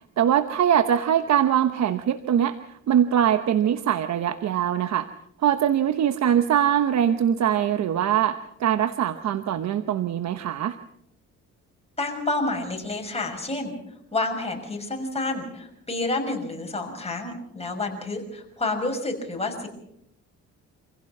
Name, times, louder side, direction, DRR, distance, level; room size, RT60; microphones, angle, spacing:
voice 1, 0.2-5.1 5.4-10.8, right 9 dB, 65° right, 10 dB, 1.0 m, -22 dB
voice 2, 12.0-13.8 14.1-19.7, left 2 dB, 20° left, 2 dB, 6.0 m, -29 dB
26.5 x 16.0 x 6.0 m, 0.77 s
cardioid pair, 90°, 30 cm